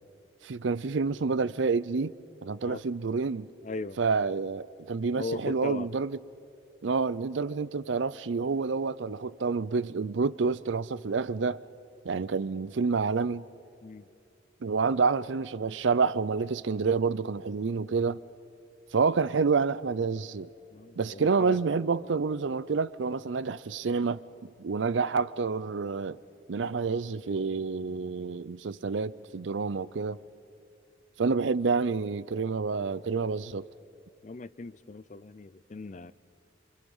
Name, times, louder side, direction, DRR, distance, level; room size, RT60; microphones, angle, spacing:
voice 1, 0.4-2.1 2.4-3.5 4.0-6.2 6.8-11.6 12.0-13.5 14.6-18.2 18.9-20.5 21.0-26.2 26.5-30.2 31.2-33.7, right 4 dB, 75° right, 0.5 m, -28 dB
voice 2, 3.6-4.0 5.1-5.9 13.8-14.0 20.7-21.6 34.2-36.1, left 3 dB, 40° left, 0.5 m, -38 dB
27.5 x 26.5 x 5.5 m
head